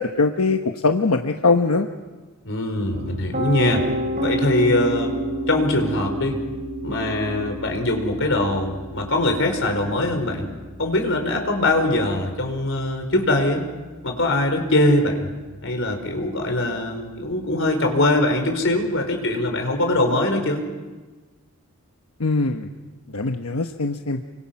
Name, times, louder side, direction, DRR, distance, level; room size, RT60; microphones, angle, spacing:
voice 1, 0.0-1.9 22.2-22.7 23.1-24.2, left 3 dB, 90° left, 5 dB, 1.1 m, -21 dB
voice 2, 2.4-3.9 4.2-5.1 5.5-6.4 6.8-10.5 10.8-13.7 14.0-15.3 15.6-20.6, left 1 dB, 60° left, 4 dB, 4.6 m, -22 dB
Piano, 2.9-14.9, right 1 dB, 40° right, 3.8 m, -31 dB
30.0 x 25.0 x 6.0 m, 1.3 s
head